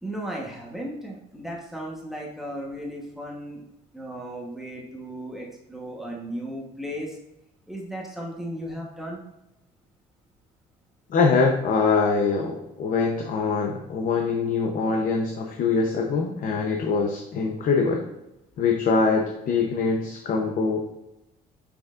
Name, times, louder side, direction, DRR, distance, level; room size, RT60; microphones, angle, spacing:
voice 1, 0.0-3.6 3.9-7.2 7.7-9.2, equal, ahead, -2 dB, 1.1 m, -35 dB
voice 2, 11.1-18.0 18.6-20.8, left 4 dB, 55° left, 1 dB, 0.8 m, -23 dB
6.2 x 6.0 x 2.5 m, 0.90 s
cardioid pair, 110°, 17 cm